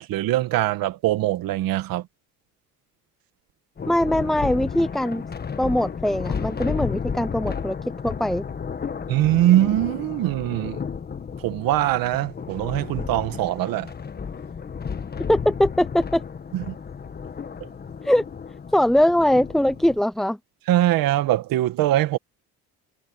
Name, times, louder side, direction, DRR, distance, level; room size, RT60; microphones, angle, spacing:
voice 1, 0.0-2.1 9.1-10.8 11.4-13.9 16.5-16.7 20.7-22.2, right 14 dB, 80° right, 1.8 m, -22 dB
Thunder, 3.8-20.0, left 6 dB, 30° left, 1.4 m, -33 dB
voice 2, 3.9-5.2 5.6-8.4 15.3-16.2 18.0-18.3 18.7-20.4, left 1 dB, ahead, 0.7 m, -21 dB
cardioid pair, 115°, 34 cm